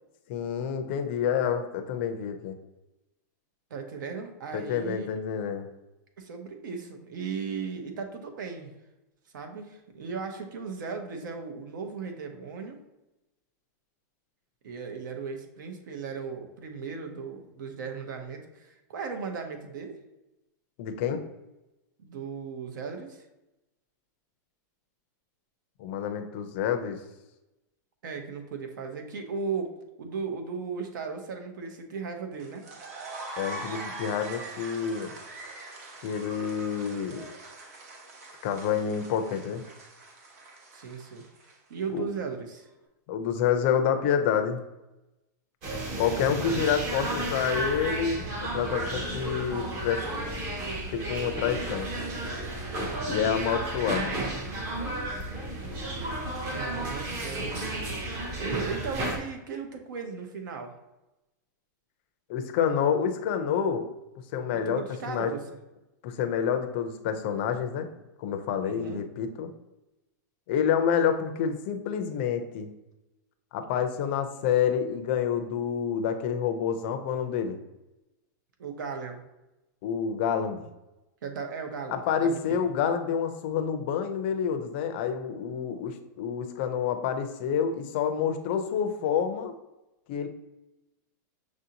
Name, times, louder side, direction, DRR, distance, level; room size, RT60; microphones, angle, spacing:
voice 1, 0.3-2.6 4.5-5.7 20.8-21.2 25.8-27.0 33.4-35.1 36.0-37.2 38.4-39.6 41.9-42.1 43.1-44.6 46.0-50.1 50.9-51.9 53.1-54.1 62.3-63.9 64.3-65.3 66.0-67.9 68.2-69.5 70.5-72.7 73.5-77.6 79.8-80.6 81.9-89.5 90.1-90.3, left 7 dB, 35° left, 7 dB, 0.4 m, -28 dB
voice 2, 3.7-5.2 6.2-8.7 9.3-12.8 14.6-20.0 22.0-23.2 28.0-29.7 30.0-32.6 40.7-41.2 41.7-42.7 46.1-46.7 46.9-47.2 56.4-57.5 58.4-60.7 64.5-65.6 68.6-69.0 78.6-79.2 81.2-82.6, right 5 dB, 85° right, 5 dB, 0.8 m, -37 dB
sound 1, 32.4-41.7, right 2 dB, 55° right, 0.8 m, -43 dB
sound 2, 45.6-59.2, right 1 dB, 25° right, 0.6 m, -33 dB
6.1 x 2.6 x 2.7 m, 0.98 s
supercardioid pair, 180°, 10 cm